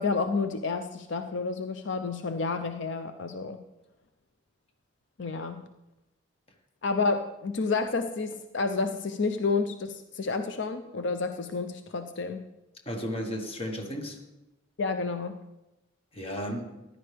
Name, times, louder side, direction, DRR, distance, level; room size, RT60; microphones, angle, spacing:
voice 1, 0.0-3.6 5.2-5.6 6.8-12.4 14.8-15.4, left 4 dB, 70° left, 8 dB, 0.6 m, -30 dB
voice 2, 12.8-14.2 16.1-16.8, equal, 30° left, 3 dB, 1.6 m, -34 dB
14.5 x 11.0 x 3.5 m, 0.95 s
head